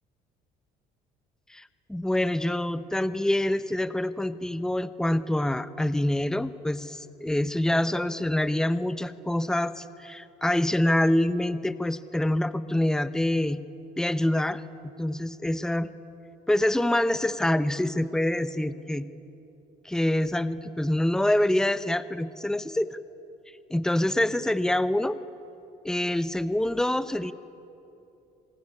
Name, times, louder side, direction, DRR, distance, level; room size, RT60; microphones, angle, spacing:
voice 1, 1.5-13.6 14.0-14.6 15.0-15.9 16.5-19.1 19.8-23.0 23.7-25.2 25.8-27.3, left 1 dB, 5° left, 12 dB, 0.9 m, -26 dB
28.0 x 20.0 x 10.0 m, 2.8 s
cardioid pair, 110°, 17 cm